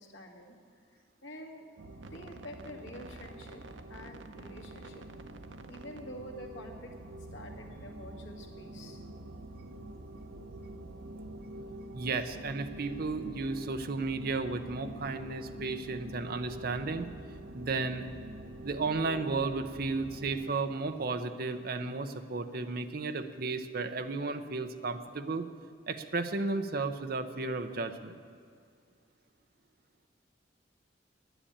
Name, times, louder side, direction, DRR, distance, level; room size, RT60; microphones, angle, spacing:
voice 1, 0.0-1.7 2.1-5.1 5.7-6.9 7.3-9.0, equal, 85° left, 1 dB, 2.0 m, -48 dB
sound 1, 1.8-20.5, right 1 dB, 90° right, 0.8 m, -45 dB
voice 2, 11.9-17.1 17.5-18.1 18.6-25.4 25.9-28.1, right 3 dB, 55° right, 8 dB, 0.7 m, -34 dB
10.0 x 9.9 x 8.7 m, 2.3 s
head